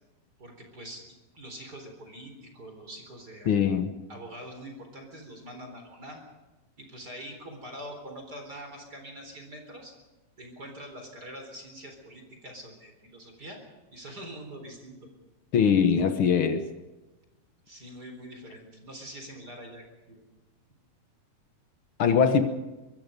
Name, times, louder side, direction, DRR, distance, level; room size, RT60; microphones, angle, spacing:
voice 1, 0.4-1.1 1.3-3.5 4.1-6.2 6.8-9.9 10.4-13.6 13.9-15.1 17.7-20.2, equal, 25° right, 3 dB, 4.2 m, -44 dB
voice 2, 3.4-3.9 15.5-16.6 22.0-22.5, left 7 dB, 80° left, 8 dB, 1.1 m, -22 dB
24.0 x 22.5 x 5.3 m, 1.1 s
omnidirectional pair, 4.2 m